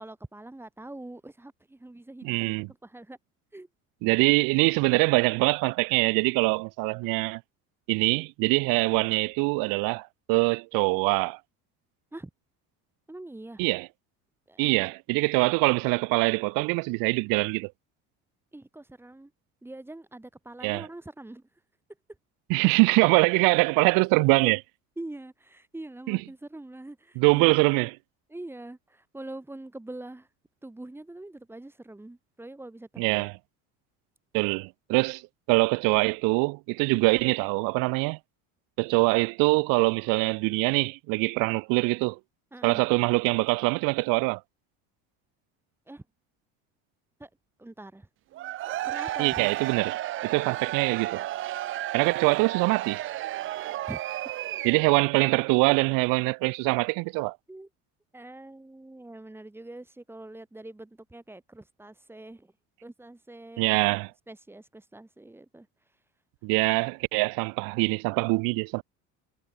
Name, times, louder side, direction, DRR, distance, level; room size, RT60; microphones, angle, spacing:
voice 1, 0.0-2.5 2.8-3.2 3.5-3.7 7.0-7.2 12.1-12.3 13.1-13.7 14.5-14.9 18.5-19.3 19.6-21.4 25.0-27.6 28.3-30.3 30.6-33.3 42.5-42.8 45.9-46.0 47.2-47.3 47.6-48.1 48.8-49.3 53.9-54.0 57.5-57.7 58.1-62.5 62.8-64.0 64.3-65.7, right 2 dB, 5° right, 1.9 m, -44 dB
voice 2, 2.2-2.7 4.0-7.4 7.9-11.4 13.6-13.9 14.6-17.7 20.6-20.9 22.5-24.6 26.1-26.2 27.2-28.0 33.0-33.3 34.3-35.2 35.5-38.2 38.8-42.2 42.6-44.4 49.2-51.3 51.9-53.0 54.6-57.4 63.6-64.1 66.4-68.8, right 28 dB, 75° right, 0.7 m, -24 dB
Cheering / Crowd, 48.3-55.1, right 14 dB, 40° right, 0.5 m, -33 dB
cardioid pair, 120°, 34 cm